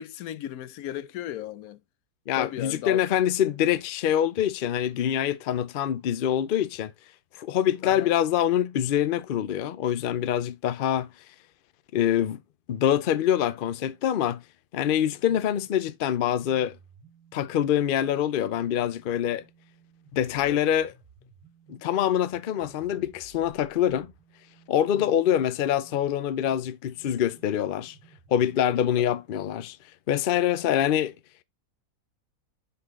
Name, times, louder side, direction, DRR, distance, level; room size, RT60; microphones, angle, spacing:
voice 1, 0.0-1.8 2.4-3.0 7.8-8.1 20.3-20.6 24.9-25.1, left 11 dB, 70° left, 1.0 m, -36 dB
voice 2, 2.3-6.9 7.4-11.1 11.9-12.4 12.7-14.4 14.7-16.8 17.3-19.4 20.1-20.9 21.7-24.1 24.7-28.0 28.3-29.8 30.1-31.1, left 10 dB, 90° left, 0.4 m, -25 dB
sound 1, 16.4-29.3, right 6 dB, 90° right, 2.6 m, -57 dB
5.8 x 5.7 x 3.6 m
omnidirectional pair, 1.7 m